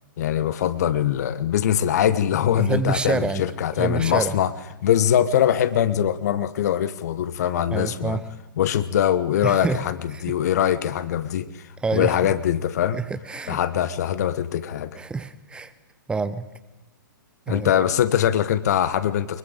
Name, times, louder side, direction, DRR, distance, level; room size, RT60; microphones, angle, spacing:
voice 1, 0.2-4.5 4.8-8.2 8.6-10.0 10.2-11.5 11.9-13.0 13.5-15.0 17.5-19.4, left 10 dB, 50° left, 15 dB, 1.2 m, -22 dB
voice 2, 2.6-3.4 3.8-4.3 7.7-8.3 9.4-10.4 11.8-12.2 12.9-13.6 15.0-15.7 16.1-16.5 17.5-17.8, right 4 dB, 10° right, 14 dB, 0.7 m, -27 dB
23.5 x 22.0 x 5.1 m, 1.1 s
figure-of-eight pair, 115°, 11 cm